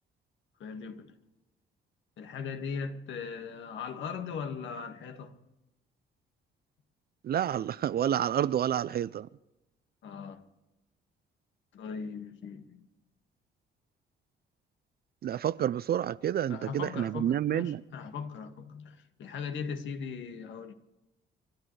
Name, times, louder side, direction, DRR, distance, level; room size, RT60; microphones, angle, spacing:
voice 1, 0.6-1.1 2.2-5.3 10.0-10.4 11.7-12.9 16.5-20.7, left 6 dB, 70° left, 1.8 m, -39 dB
voice 2, 7.2-9.3 15.2-17.8, right 10 dB, 50° right, 0.4 m, -29 dB
29.5 x 12.0 x 3.3 m
cardioid pair, 90°, 20 cm